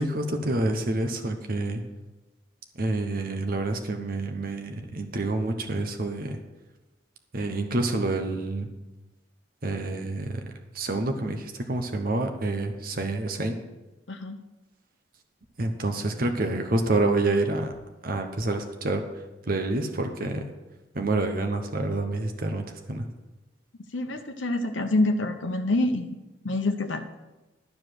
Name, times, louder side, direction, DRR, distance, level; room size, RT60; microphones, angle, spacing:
voice 1, 0.0-1.8 2.8-6.4 7.3-8.7 9.6-13.6 15.6-17.7 18.0-20.5 20.9-23.1, right 2 dB, 50° right, 5 dB, 0.9 m, -28 dB
voice 2, 14.1-14.4 23.9-26.2 26.4-27.0, left 2 dB, 75° left, 4 dB, 0.8 m, -26 dB
12.0 x 5.0 x 7.7 m, 1.1 s
head